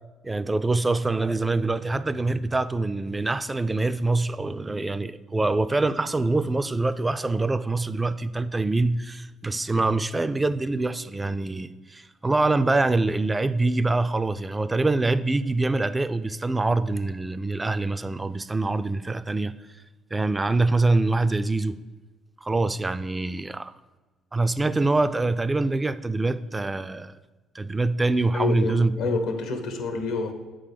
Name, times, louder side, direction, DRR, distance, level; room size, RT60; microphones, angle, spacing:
voice 1, 0.2-19.6 20.1-21.8 22.4-23.7 24.3-27.1 27.5-29.2, right 2 dB, 20° right, 0.4 m, -25 dB
voice 2, 28.3-30.3, left 3 dB, 80° left, 1.2 m, -28 dB
8.3 x 3.8 x 6.7 m
supercardioid pair, 75°, 0 cm